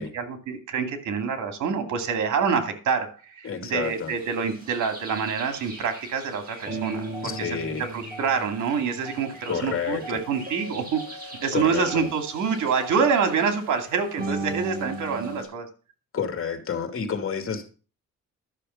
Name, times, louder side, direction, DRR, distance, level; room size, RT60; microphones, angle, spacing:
voice 1, 0.0-7.5 7.9-15.7, right 6 dB, 75° right, 7 dB, 2.4 m, -26 dB
voice 2, 3.4-4.1 7.2-7.8 9.5-10.2 11.5-12.1 16.1-17.7, left 6 dB, 45° left, 6 dB, 2.7 m, -29 dB
sound 1, 3.8-15.4, right 2 dB, 30° right, 7.1 m, -38 dB
12.5 x 6.6 x 5.7 m, 0.36 s
cardioid pair, 90°, 30 cm